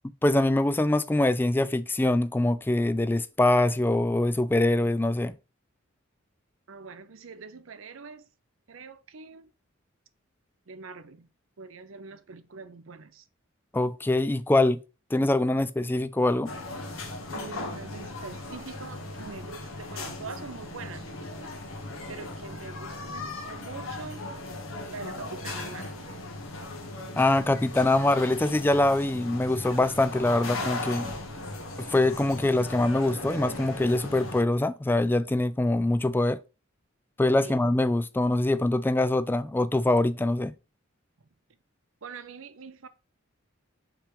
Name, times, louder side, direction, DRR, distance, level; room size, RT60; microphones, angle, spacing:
voice 1, 0.2-5.3 13.7-14.8 15.1-16.5 27.2-31.1 31.8-36.4 37.2-40.5, left 2 dB, 10° left, 0.3 m, -24 dB
voice 2, 6.7-8.3 8.7-9.5 10.7-11.3 11.6-13.3 17.3-21.1 22.1-24.3 24.9-26.1 37.4-37.7 42.0-42.9, right 4 dB, 75° right, 0.6 m, -43 dB
sound 1, 16.5-34.4, left 2 dB, 80° left, 1.6 m, -38 dB
5.8 x 3.4 x 5.1 m
head